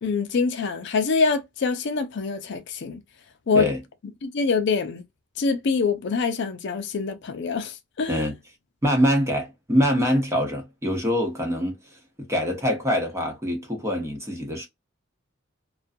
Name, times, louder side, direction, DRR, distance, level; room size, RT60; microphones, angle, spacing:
voice 1, 0.0-3.0 3.5-3.7 4.2-5.0 5.4-8.2, left 4 dB, 60° left, 0.4 m, -25 dB
voice 2, 8.8-11.8 12.2-14.7, equal, 15° right, 0.8 m, -24 dB
2.4 x 2.2 x 2.5 m
head